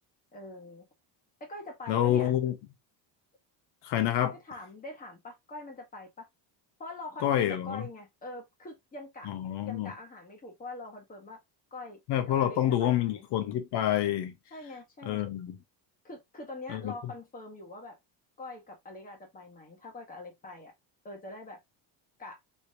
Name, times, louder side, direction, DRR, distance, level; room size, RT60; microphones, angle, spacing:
voice 1, 0.3-0.8 1.4-2.3 4.3-6.3 6.8-9.3 9.6-11.4 11.7-12.0 12.3-13.2 14.5-15.2 16.0-18.0 18.4-20.7 21.0-21.6 22.2-22.4, left 2 dB, 20° left, 1.2 m, -44 dB
voice 2, 1.9-2.5 3.8-4.3 7.2-7.8 9.3-9.9 12.1-14.3 15.0-15.6 16.7-16.9, left 11 dB, 70° left, 1.0 m, -27 dB
3.3 x 3.0 x 2.7 m
cardioid pair, 135°, 42 cm